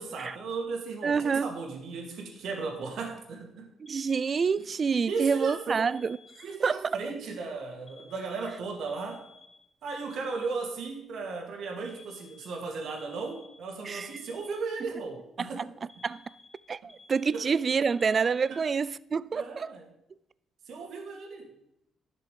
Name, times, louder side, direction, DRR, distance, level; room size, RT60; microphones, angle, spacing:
voice 1, 0.0-3.7 5.1-5.8 6.4-9.2 9.8-15.6 17.3-17.5 18.5-18.6 19.3-19.9 20.7-21.5, right 4 dB, 75° right, 2.2 m, -36 dB
voice 2, 1.0-1.5 3.8-6.2 6.6-7.0 13.9-14.1 15.4-15.5 16.0-16.2 16.7-19.7, right 5 dB, 40° right, 0.3 m, -27 dB
Alarm, 3.9-6.8 7.9-10.8 11.9-14.9 15.9-18.9, left 4 dB, 10° left, 2.0 m, -55 dB
11.5 x 6.7 x 5.0 m
cardioid pair, 90°, 0 cm